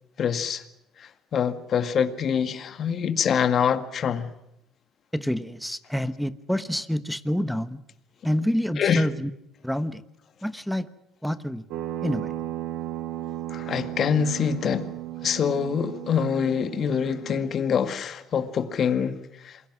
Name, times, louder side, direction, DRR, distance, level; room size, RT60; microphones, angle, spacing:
voice 1, 0.2-0.6 1.0-4.3 8.8-9.1 13.5-14.9 15.2-19.6, left 7 dB, 45° left, 1.9 m, -25 dB
voice 2, 5.1-7.8 8.2-9.3 9.6-10.0 10.4-10.9 11.2-11.6 12.0-12.3, equal, ahead, 1.1 m, -27 dB
sound 1, 11.7-17.5, right 14 dB, 75° right, 1.3 m, -35 dB
28.0 x 22.0 x 6.2 m
cardioid pair, 115°, 0 cm